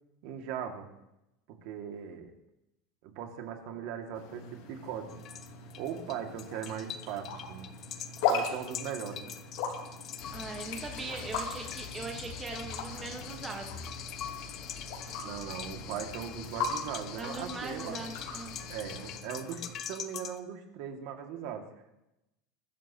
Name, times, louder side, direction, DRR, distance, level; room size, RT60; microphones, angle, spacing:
voice 1, 0.2-0.9 1.6-2.3 3.0-5.2 5.8-7.8 8.3-9.4 15.2-18.0 18.7-19.6 19.9-21.7, right 8 dB, 50° right, 4 dB, 2.1 m, -39 dB
sound 1, 4.1-19.7, left 5 dB, 65° left, 4.1 m, -39 dB
sound 2, 5.1-20.4, left 9 dB, 30° left, 0.7 m, -45 dB
sound 3, 10.2-19.2, left 7 dB, 45° left, 1.2 m, -45 dB
voice 2, 10.3-13.8 17.2-18.5, right 3 dB, 15° right, 1 dB, 1.3 m, -40 dB
22.5 x 14.0 x 3.0 m, 0.89 s
supercardioid pair, 175°, 0 cm